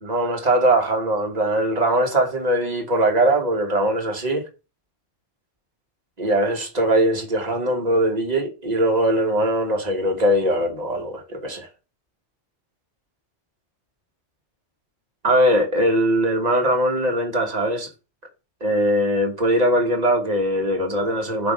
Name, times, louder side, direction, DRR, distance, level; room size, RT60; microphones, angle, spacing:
voice 1, 0.0-4.4 6.2-11.7 15.2-17.9 18.6-21.5, right 1 dB, 35° right, 1.5 m, -21 dB
7.8 x 3.2 x 5.0 m
omnidirectional pair, 1.2 m